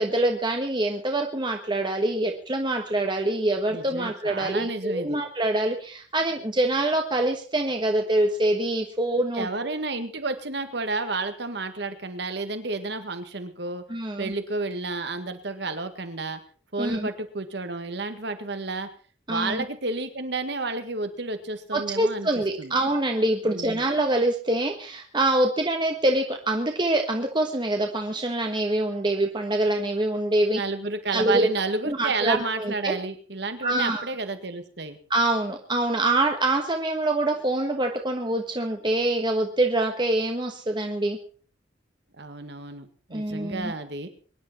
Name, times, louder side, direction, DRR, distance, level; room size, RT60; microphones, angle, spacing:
voice 1, 0.0-9.5 13.9-14.3 16.8-17.1 19.3-19.6 21.7-30.6 31.1-31.5 31.8-33.0 33.6-34.1 35.1-41.2 43.1-43.7, right 1 dB, 25° right, 3 dB, 1.3 m, -25 dB
voice 2, 3.7-5.2 9.3-13.8 14.2-16.4 16.7-18.9 19.3-22.3 22.6-22.7 23.4-23.8 30.5-35.0 42.2-44.1, right 3 dB, 60° right, 9 dB, 1.9 m, -31 dB
23.5 x 10.5 x 4.3 m, 0.42 s
head